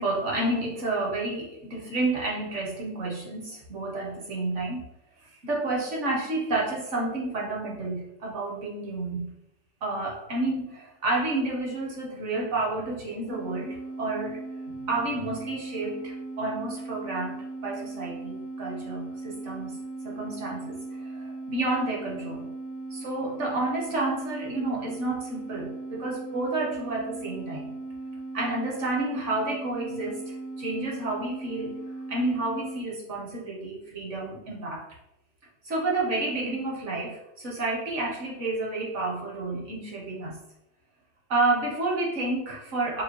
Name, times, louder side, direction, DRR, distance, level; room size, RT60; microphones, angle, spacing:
voice 1, 0.0-4.8 5.4-9.3 9.8-14.4 14.8-19.8 20.0-20.8 21.1-22.5 22.9-27.7 28.3-31.8 32.1-34.9 35.6-40.4 41.3-43.0, right 2 dB, 50° right, -1 dB, 1.0 m, -30 dB
sound 1, 13.3-32.9, right 2 dB, 65° left, 0.7 m, -38 dB
5.3 x 2.4 x 2.9 m, 0.82 s
omnidirectional pair, 1.9 m